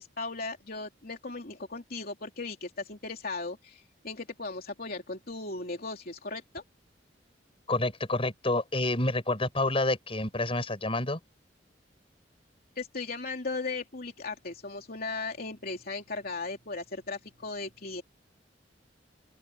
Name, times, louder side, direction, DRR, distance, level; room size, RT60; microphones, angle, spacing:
voice 1, 0.0-6.6 12.7-18.0, left 3 dB, 55° left, 3.3 m, -37 dB
voice 2, 7.7-11.2, left 2 dB, 30° left, 6.3 m, -28 dB
open air
head